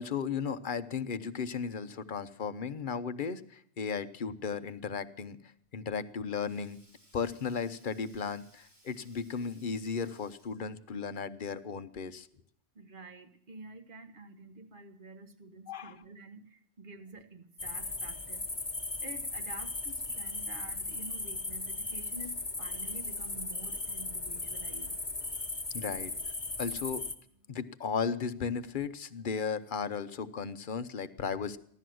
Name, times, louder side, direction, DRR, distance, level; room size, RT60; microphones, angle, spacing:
voice 1, 0.0-5.4 5.7-6.8 7.1-12.3 15.7-16.0 25.7-26.1 26.6-27.0 27.5-31.6, left 6 dB, 50° left, 13 dB, 0.8 m, -35 dB
Sink (filling or washing), 5.7-10.8, right 1 dB, 70° right, 4.0 m, -64 dB
voice 2, 12.8-16.4 16.8-18.4 19.0-24.9, right 2 dB, 50° right, 8 dB, 1.5 m, -49 dB
sound 1, 17.6-27.1, left 2 dB, 25° left, 1.2 m, -37 dB
15.5 x 12.0 x 7.7 m, 0.68 s
omnidirectional pair, 1.1 m